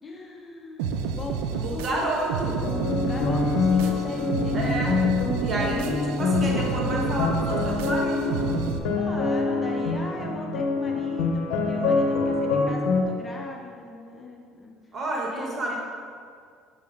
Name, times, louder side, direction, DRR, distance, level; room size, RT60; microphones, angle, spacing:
voice 1, 0.0-2.1 2.9-4.8 5.5-6.1 8.9-14.8 15.3-15.8, left 3 dB, 25° left, 0 dB, 0.9 m, -39 dB
sound 1, 0.8-8.8, right 5 dB, 85° right, 0.4 m, -30 dB
voice 2, 1.6-2.6 4.5-4.9 5.4-8.5 14.9-15.8, right 2 dB, 40° right, -2 dB, 1.6 m, -29 dB
sound 2, 2.6-13.0, left 4 dB, 80° left, 0.8 m, -25 dB
6.6 x 5.5 x 3.6 m, 2.2 s
supercardioid pair, 85°, 0 cm